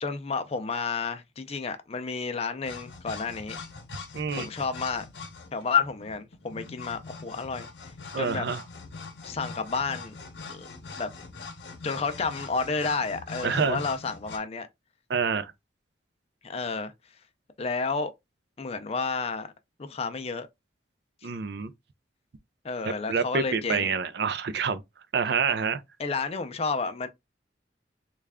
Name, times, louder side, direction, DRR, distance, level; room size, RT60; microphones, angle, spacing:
voice 1, 0.0-3.6 4.4-5.0 5.5-7.7 8.2-8.5 9.2-10.2 10.5-10.7 10.9-11.1 11.8-14.7 16.4-16.9 17.6-18.1 18.6-19.5 19.8-20.5 21.2-21.3 22.6-23.9 26.0-27.1, left 4 dB, 35° left, 0.5 m, -30 dB
sound 1, 2.6-14.4, left 4 dB, 65° left, 0.8 m, -42 dB
voice 2, 4.1-4.5 8.1-8.6 13.4-13.8 15.1-15.5 21.2-21.7 23.1-24.8 25.1-25.8, right 5 dB, 65° right, 0.4 m, -27 dB
3.2 x 2.3 x 3.4 m
head